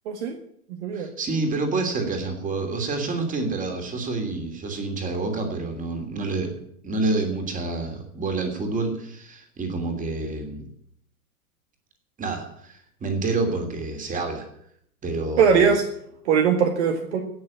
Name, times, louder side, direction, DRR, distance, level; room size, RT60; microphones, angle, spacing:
voice 1, 0.1-0.4 0.8-1.1 15.4-15.8 16.3-17.2, right 6 dB, 50° right, 5 dB, 1.9 m, -20 dB
voice 2, 0.9-6.5 6.8-10.7 12.2-14.5 15.0-15.7, right 3 dB, 15° right, 5 dB, 3.0 m, -28 dB
17.5 x 6.7 x 8.9 m, 0.70 s
figure-of-eight pair, 100°, 45 cm